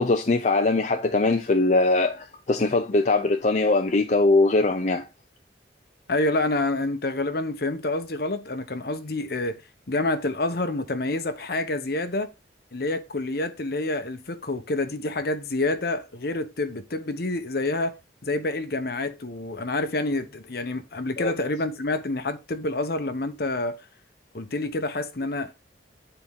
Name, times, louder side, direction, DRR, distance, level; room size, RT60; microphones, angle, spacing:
voice 1, 0.0-5.1 21.2-21.3, left 2 dB, 40° left, 0.6 m, -21 dB
voice 2, 6.1-9.6 9.9-12.3 12.7-18.0 18.2-23.8 24.3-25.6, left 2 dB, 60° left, 1.0 m, -28 dB
9.6 x 4.5 x 3.6 m
head